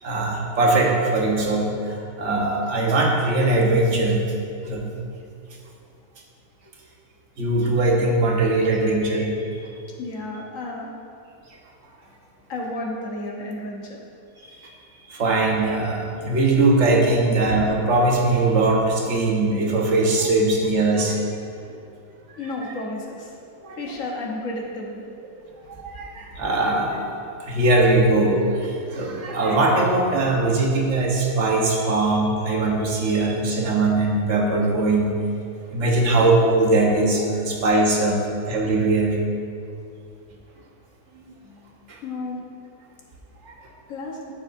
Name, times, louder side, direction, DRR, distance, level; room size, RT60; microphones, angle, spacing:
voice 1, 0.0-4.2 4.6-4.9 7.4-9.3 14.4-14.7 15.1-21.4 21.7-21.8 23.6-23.8 25.7-35.1 35.7-38.2 38.5-39.2 41.9-42.0 43.4-43.6, right 2 dB, 55° right, -1 dB, 1.4 m, -21 dB
voice 2, 10.0-10.9 12.5-14.0 22.4-23.3 23.8-25.1 42.0-42.4 43.9-44.2, left 2 dB, 65° left, -2 dB, 1.5 m, -32 dB
12.0 x 7.3 x 2.6 m, 2.4 s
omnidirectional pair, 1.5 m